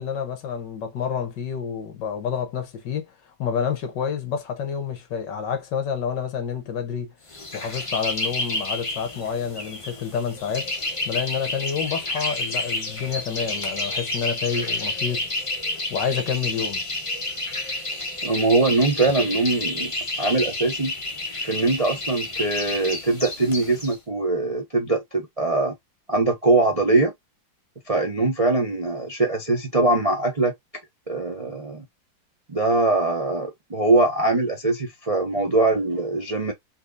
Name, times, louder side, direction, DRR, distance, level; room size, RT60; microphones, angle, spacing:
voice 1, 0.0-3.1 3.4-7.1 7.5-10.7 11.0-15.3 15.9-16.8, left 7 dB, 70° left, 1.6 m, -28 dB
sound 1, 7.3-23.9, left 2 dB, 20° left, 0.9 m, -30 dB
voice 2, 18.2-19.9 20.2-20.9 21.4-25.7 26.1-27.1 27.9-30.5 31.1-31.8 32.5-36.5, right 2 dB, 30° right, 0.7 m, -22 dB
4.4 x 3.8 x 2.6 m
omnidirectional pair, 2.1 m